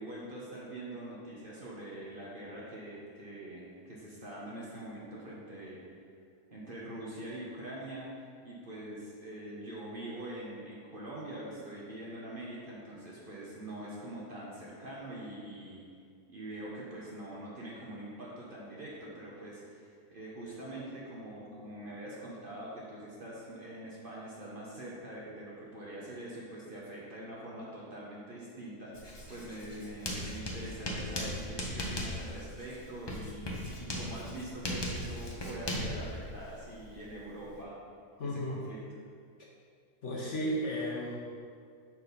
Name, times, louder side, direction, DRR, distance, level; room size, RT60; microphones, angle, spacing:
voice 1, 0.0-5.8 6.5-15.8 16.3-33.5 33.8-37.8 38.2-38.8, right 1 dB, 35° right, -6 dB, 1.2 m, -44 dB
Writing, 28.9-37.6, left 1 dB, 25° left, 0.6 m, -38 dB
voice 2, 38.2-38.6 40.0-41.2, equal, 50° left, -4 dB, 1.1 m, -34 dB
6.2 x 4.6 x 5.3 m, 2.2 s
omnidirectional pair, 1.7 m